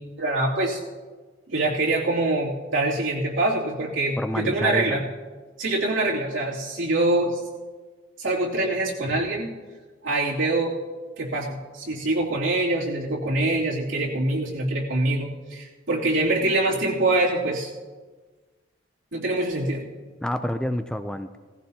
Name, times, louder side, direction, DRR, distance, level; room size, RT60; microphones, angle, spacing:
voice 1, 0.2-0.8 1.5-5.1 5.6-7.4 8.2-9.6 10.0-10.7 11.2-17.7 19.1-19.9, right 2 dB, 70° right, -4 dB, 2.9 m, -24 dB
voice 2, 4.2-5.0 20.2-21.4, left 1 dB, 5° left, 8 dB, 0.4 m, -28 dB
18.0 x 15.0 x 2.8 m, 1.3 s
head